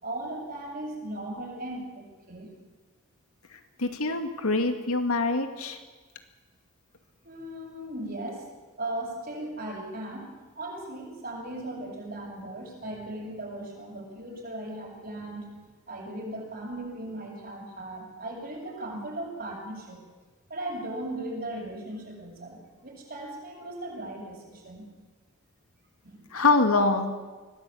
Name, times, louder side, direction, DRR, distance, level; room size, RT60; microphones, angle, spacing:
voice 1, 0.0-2.5 7.2-8.5 8.8-15.5 15.9-20.0 20.5-24.9 26.0-26.3, right 1 dB, 45° right, 0 dB, 6.9 m, -37 dB
voice 2, 3.8-5.8 26.3-27.3, left 3 dB, 85° left, 6 dB, 2.3 m, -24 dB
24.0 x 17.5 x 8.7 m, 1.3 s
head